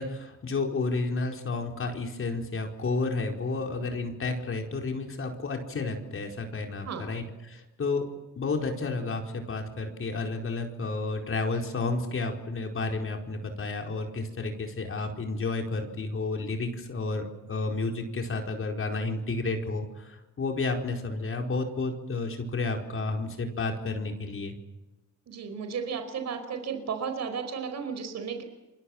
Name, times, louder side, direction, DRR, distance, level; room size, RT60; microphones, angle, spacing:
voice 1, 0.0-8.1 8.4-24.5, left 3 dB, 45° left, 3 dB, 4.7 m, -31 dB
voice 2, 25.3-28.4, right 6 dB, 60° right, 8 dB, 4.7 m, -34 dB
29.0 x 22.5 x 7.4 m, 1.0 s
cardioid pair, 90°, 30 cm